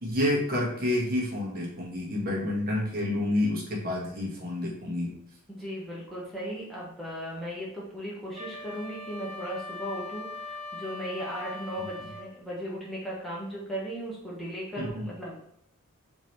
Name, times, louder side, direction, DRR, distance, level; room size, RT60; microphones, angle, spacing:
voice 1, 0.0-5.1 14.8-15.1, left 1 dB, 45° right, -3 dB, 1.1 m, -29 dB
voice 2, 5.5-15.5, equal, ahead, -7 dB, 0.8 m, -37 dB
Wind instrument woodwind instrument, 8.3-12.3, left 2 dB, 85° right, 0.7 m, -40 dB
3.8 x 2.8 x 3.0 m, 0.75 s
head